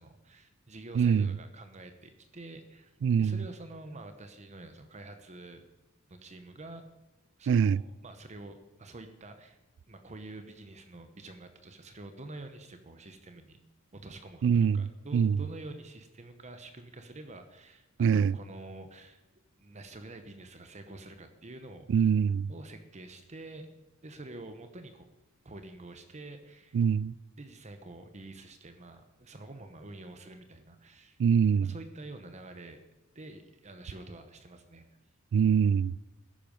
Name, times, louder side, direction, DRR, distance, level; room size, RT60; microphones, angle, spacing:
voice 1, 0.0-2.9 3.2-5.6 6.1-6.9 7.4-9.6 9.9-13.6 13.9-19.2 19.6-22.1 22.5-23.7 24.0-25.1 25.4-26.8 27.4-31.2 31.6-32.8 33.1-34.8, right 2 dB, 35° right, 0.9 m, -47 dB
voice 2, 1.0-1.3 3.0-3.4 7.5-7.8 14.4-15.4 18.0-18.4 21.9-22.5 26.7-27.1 31.2-31.7 35.3-35.9, right 7 dB, 60° right, 0.3 m, -24 dB
14.0 x 10.5 x 5.3 m
head